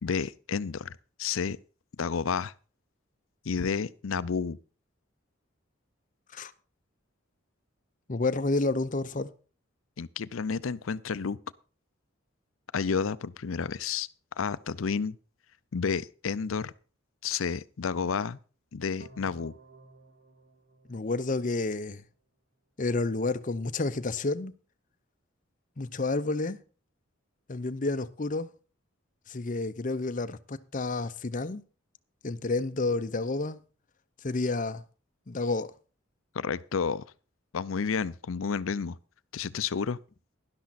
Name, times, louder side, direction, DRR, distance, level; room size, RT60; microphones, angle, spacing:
voice 1, 0.0-1.6 2.0-2.5 3.5-4.6 10.0-11.4 12.7-14.1 14.4-15.2 15.7-16.7 17.2-18.4 18.7-19.5 36.3-37.0 37.5-39.0 39.3-40.0, left 5 dB, 85° left, 0.5 m, -31 dB
voice 2, 8.1-9.3 20.9-22.0 22.8-24.5 25.8-26.6 27.5-28.5 29.3-31.6 32.2-33.6 34.2-34.8 35.3-35.7, left 3 dB, 40° left, 0.7 m, -30 dB
sound 1, 19.0-22.0, right 2 dB, 80° right, 2.8 m, -55 dB
12.0 x 11.5 x 4.1 m
head